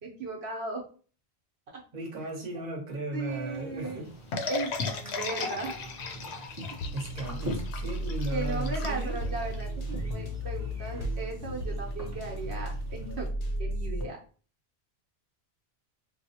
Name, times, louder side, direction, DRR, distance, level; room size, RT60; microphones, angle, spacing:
voice 1, 0.0-0.8 3.1-4.0 4.5-5.8 8.3-13.3 13.6-14.2, right 3 dB, 80° right, -1 dB, 1.0 m, -36 dB
voice 2, 1.9-4.1 6.9-9.2, right 2 dB, 45° right, 0 dB, 1.0 m, -36 dB
sound 1, 3.3-13.3, equal, 20° right, 0.6 m, -44 dB
sound 2, 4.3-9.6, left 4 dB, 85° left, 0.9 m, -36 dB
sound 3, 5.9-14.1, right 1 dB, 60° left, 0.7 m, -35 dB
4.3 x 2.0 x 2.7 m, 0.40 s
omnidirectional pair, 1.1 m